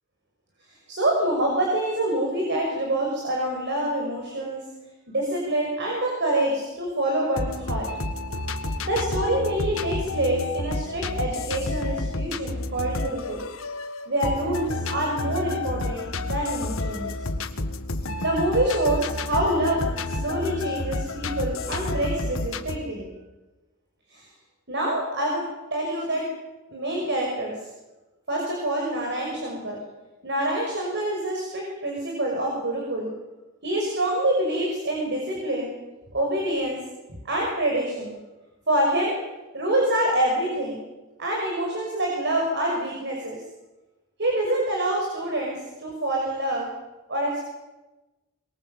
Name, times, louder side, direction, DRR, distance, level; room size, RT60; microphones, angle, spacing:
voice 1, 0.9-4.6 5.1-7.9 8.8-13.4 14.1-17.1 18.2-23.1 24.1-24.3 24.7-25.4 25.7-26.3 26.7-27.7 28.3-29.8 30.2-33.1 33.6-35.7 36.1-36.8 37.2-38.2 38.7-39.1 39.5-40.8 41.2-43.4 44.2-46.7 47.1-47.4, right 1 dB, 60° right, -1 dB, 6.0 m, -26 dB
sound 1, 7.4-22.8, left 2 dB, 75° left, 1.7 m, -30 dB
23.5 x 22.0 x 8.1 m, 1.1 s
head